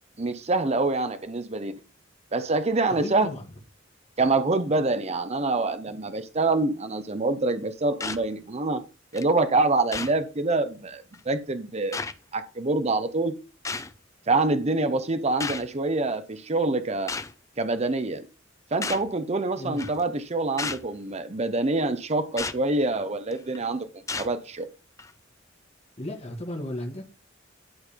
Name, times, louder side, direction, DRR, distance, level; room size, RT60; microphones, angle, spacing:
voice 1, 0.2-1.7 2.3-3.3 4.2-8.8 9.1-12.0 12.3-13.4 14.3-17.1 17.6-18.3 18.7-23.9 24.2-24.7, right 2 dB, 35° right, 0.8 m, -26 dB
voice 2, 3.0-3.4 19.6-19.9 26.0-27.0, left 1 dB, 35° left, 1.8 m, -34 dB
sound 1, 8.0-8.2 9.2-9.3 9.9-10.2 11.1-11.2 11.9-12.1 13.6-13.9 15.4-15.7 17.1-17.3 18.8-19.1 19.8-20.0 20.6-20.9 22.4-22.6 23.3-23.6 24.1-24.3 25.0-25.1, left 4 dB, 15° left, 0.5 m, -32 dB
11.0 x 4.0 x 5.2 m
head